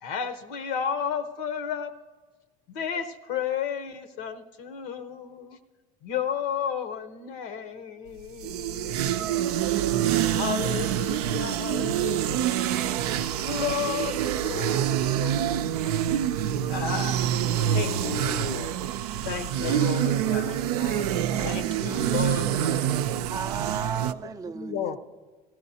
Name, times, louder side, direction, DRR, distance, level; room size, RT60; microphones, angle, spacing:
voice 1, 0.0-1.9 2.7-5.6 6.0-9.8 10.3-12.6 13.5-15.7 16.7-17.2 17.6-17.9 19.2-20.6 21.4-23.0 24.5-25.0, left 8 dB, 75° left, 0.9 m, -33 dB
sound 1, 8.2-24.1, right 11 dB, 90° right, 0.4 m, -26 dB
voice 2, 17.7-18.8 19.6-21.6, left 11 dB, 55° left, 0.5 m, -38 dB
voice 3, 23.1-25.0, right 7 dB, 20° right, 0.4 m, -34 dB
16.0 x 15.5 x 2.8 m
hypercardioid pair, 80°, 19 cm